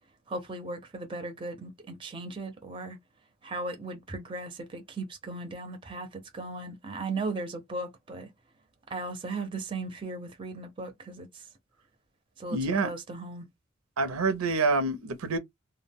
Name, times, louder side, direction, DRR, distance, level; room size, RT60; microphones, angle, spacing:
voice 1, 0.3-3.0 3.4-8.3 8.9-11.4 12.4-12.6 12.8-13.5, right 3 dB, 25° right, 0.5 m, -37 dB
voice 2, 12.5-12.9 14.0-15.4, right 3 dB, 85° right, 0.6 m, -27 dB
2.2 x 2.1 x 3.4 m
head